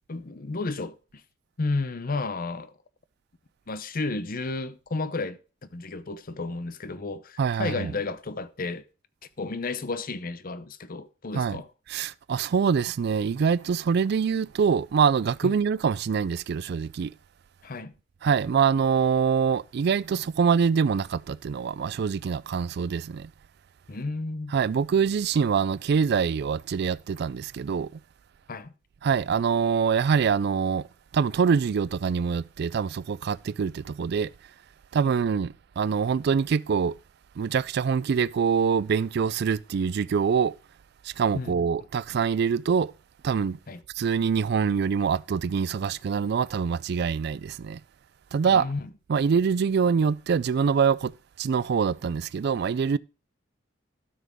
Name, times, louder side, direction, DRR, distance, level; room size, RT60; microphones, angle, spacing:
voice 1, 0.1-1.0 1.6-2.7 3.7-5.4 5.7-8.8 9.4-11.7 15.4-15.5 17.6-17.9 23.9-24.5 28.5-28.7 35.0-35.3 41.3-41.6 43.7-43.8 48.5-48.9, left 3 dB, 45° left, 0.8 m, -32 dB
voice 2, 7.4-7.9 11.3-11.6 11.9-17.1 18.2-23.3 24.5-28.0 29.0-30.9 31.1-34.3 34.9-37.0 37.4-40.5 41.0-42.9 43.2-43.6 44.0-47.8 48.3-48.7 49.1-53.0, right 6 dB, 55° right, 0.3 m, -25 dB
12.5 x 6.1 x 3.5 m
head